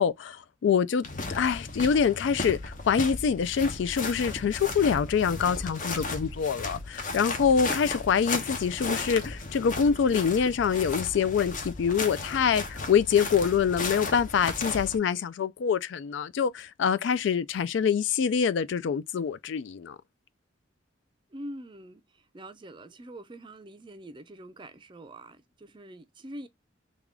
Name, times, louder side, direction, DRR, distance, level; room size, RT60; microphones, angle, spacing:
voice 1, 0.0-20.0, left 6 dB, 65° left, 0.3 m, -25 dB
sound 1, 1.0-15.0, left 3 dB, 40° left, 0.7 m, -35 dB
voice 2, 21.3-26.5, right 1 dB, 25° right, 0.4 m, -44 dB
3.4 x 2.3 x 3.6 m
head